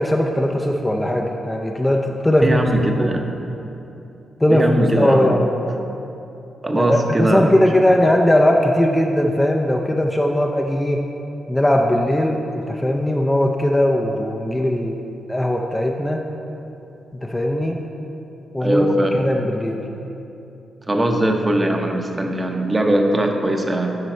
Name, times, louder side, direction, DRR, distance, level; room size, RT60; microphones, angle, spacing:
voice 1, 0.0-2.6 3.0-3.1 4.4-5.5 6.7-11.0 11.5-16.3 17.1-17.8 18.5-19.8, left 1 dB, 10° left, 1 dB, 0.4 m, -19 dB
voice 2, 2.4-3.3 4.5-5.4 6.6-7.7 18.6-19.3 20.9-24.0, right 1 dB, 20° right, 3 dB, 0.7 m, -20 dB
11.0 x 4.1 x 4.4 m, 2.9 s
cardioid pair, 105°, 0 cm